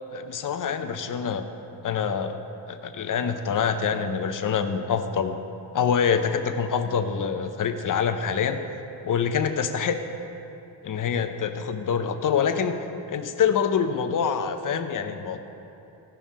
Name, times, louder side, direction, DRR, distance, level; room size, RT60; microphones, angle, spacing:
voice 1, 0.1-1.5 1.8-2.4 2.7-5.4 5.7-8.6 9.0-10.0 10.8-12.8 13.1-15.4, left 7 dB, 45° left, 7 dB, 0.7 m, -25 dB
16.0 x 5.6 x 4.2 m, 2.9 s
cardioid pair, 105°, 45 cm